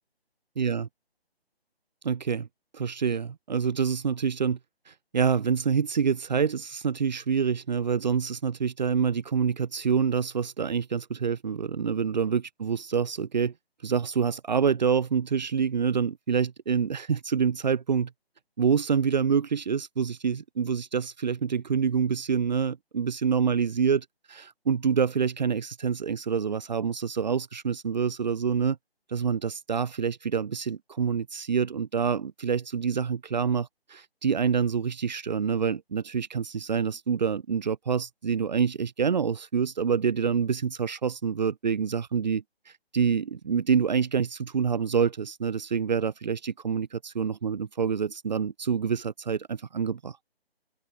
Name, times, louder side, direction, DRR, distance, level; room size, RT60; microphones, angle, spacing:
voice 1, 0.6-0.9 2.0-2.5 2.7-4.6 4.9-13.5 13.8-18.1 18.6-28.8 29.1-50.2, right 6 dB, 45° right, 2.4 m, -27 dB
open air
figure-of-eight pair, 150°, 31 cm